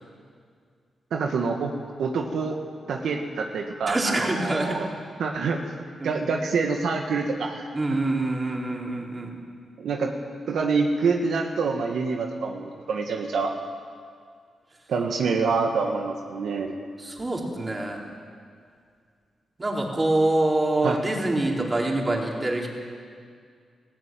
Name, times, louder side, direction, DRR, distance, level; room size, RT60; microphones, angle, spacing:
voice 1, 1.1-1.7 2.0-2.6 2.9-4.9 5.2-5.6 6.0-7.7 9.8-10.1 10.5-13.5 14.9-16.8 20.8-21.0, right 4 dB, 80° right, 2 dB, 1.7 m, -26 dB
voice 2, 3.9-4.8 6.0-6.2 7.7-9.3 17.0-18.0 19.6-22.7, right 2 dB, 30° right, -1 dB, 4.2 m, -25 dB
18.5 x 15.5 x 9.2 m, 2.1 s
cardioid pair, 75°, 0 cm